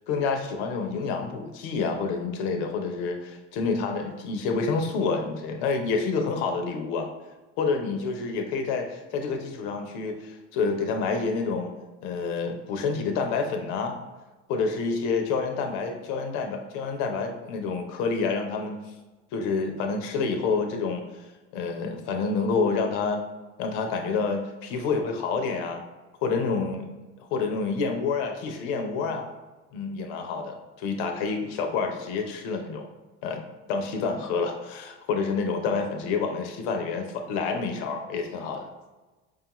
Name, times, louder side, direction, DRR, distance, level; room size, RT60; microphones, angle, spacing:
voice 1, 0.1-7.1 7.6-11.7 12.0-14.0 14.5-18.8 19.3-21.0 21.5-23.2 23.6-25.8 26.2-26.9 27.3-29.3 29.7-32.9 33.2-33.4 33.7-38.7, left 4 dB, 75° left, 4 dB, 0.7 m, -28 dB
4.8 x 2.3 x 2.9 m, 1.2 s
supercardioid pair, 90°, 37 cm